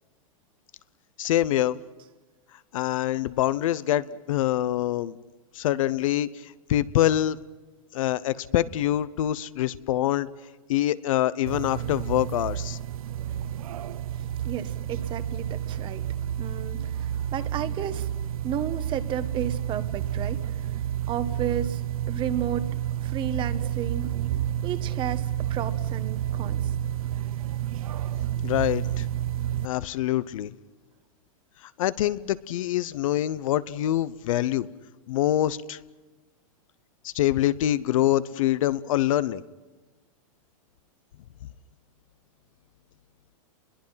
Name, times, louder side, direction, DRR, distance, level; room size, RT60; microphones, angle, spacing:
voice 1, 1.2-1.8 2.7-5.2 5.5-7.4 7.9-10.3 10.7-12.8 28.4-29.1 29.6-30.5 31.8-34.7 35.1-35.8 37.0-39.4, left 13 dB, 65° left, 17 dB, 0.9 m, -25 dB
sound 1, 11.5-29.7, right 11 dB, 80° right, 0.7 m, -30 dB
voice 2, 14.2-16.0 16.4-18.1 18.4-20.6 21.1-21.8 22.1-22.7 23.0-24.1 24.6-26.7, right 9 dB, 25° right, 12 dB, 1.3 m, -33 dB
29.0 x 21.5 x 5.8 m, 1.2 s
supercardioid pair, 145°, 18 cm